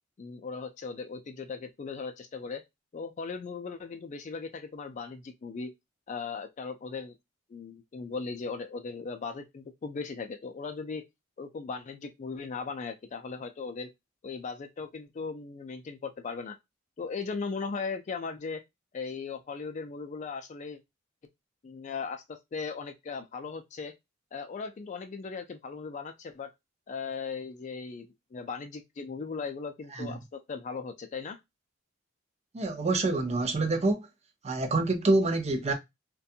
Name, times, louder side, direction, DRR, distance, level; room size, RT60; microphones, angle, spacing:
voice 1, 0.2-2.6 2.9-5.7 6.1-7.2 7.5-11.0 11.4-13.9 14.2-16.6 17.0-18.6 18.9-20.8 21.6-23.9 24.3-26.5 26.9-31.4, left 5 dB, 35° left, 0.3 m, -38 dB
voice 2, 32.5-34.1 34.4-35.7, right 2 dB, 30° right, 0.5 m, -26 dB
2.5 x 2.2 x 2.6 m
head